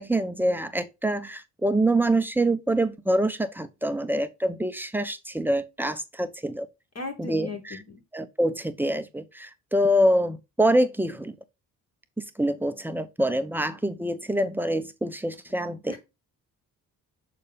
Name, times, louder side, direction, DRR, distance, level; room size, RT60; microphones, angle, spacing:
voice 1, 0.0-6.7 7.2-7.8 8.1-11.4 12.2-16.0, right 1 dB, 5° right, 0.8 m, -25 dB
voice 2, 6.9-8.0 15.9-16.0, left 3 dB, 40° left, 2.4 m, -36 dB
6.7 x 4.2 x 3.4 m
supercardioid pair, 50°, 40 cm